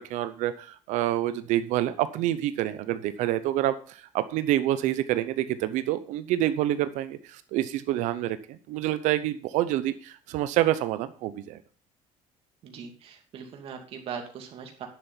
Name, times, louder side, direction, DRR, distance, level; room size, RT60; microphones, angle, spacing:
voice 1, 0.0-11.6, right 13 dB, 65° right, 12 dB, 0.8 m, -27 dB
voice 2, 12.6-14.9, right 7 dB, 45° right, 3 dB, 2.6 m, -40 dB
10.5 x 7.1 x 5.7 m, 0.41 s
cardioid pair, 170°, 13 cm